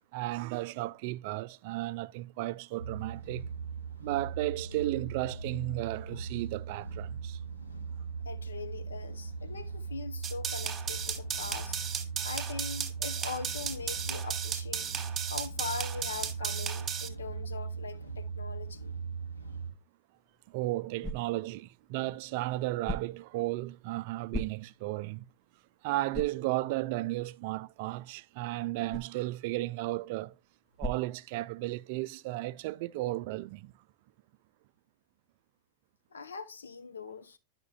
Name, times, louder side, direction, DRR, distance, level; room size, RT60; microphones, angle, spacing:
voice 1, 0.1-3.5 4.0-7.4 12.2-12.3 20.5-25.2 25.8-30.3 30.8-33.7, right 17 dB, 50° right, 0.3 m, -34 dB
sound 1, 2.8-19.7, right 5 dB, 90° left, 2.2 m, -39 dB
voice 2, 8.2-11.8 12.2-14.9 15.3-19.0 36.1-37.4, left 5 dB, 70° left, 0.7 m, -41 dB
sound 2, 10.2-17.1, right 8 dB, 20° right, 1.3 m, -35 dB
sound 3, 20.1-31.9, equal, 15° left, 0.5 m, -45 dB
10.5 x 5.8 x 2.2 m
figure-of-eight pair, 90°, 0 cm